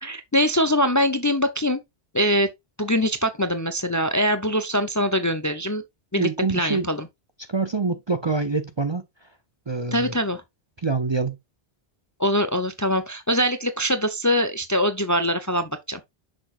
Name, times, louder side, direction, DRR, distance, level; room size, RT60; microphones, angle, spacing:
voice 1, 0.0-1.8 2.1-2.5 2.8-5.8 6.1-7.1 9.9-10.4 12.2-16.0, equal, 20° left, 0.5 m, -23 dB
voice 2, 6.2-6.9 7.5-9.0 9.7-10.2 10.8-11.4, right 4 dB, 30° right, 0.6 m, -25 dB
6.4 x 6.0 x 2.4 m
omnidirectional pair, 1.1 m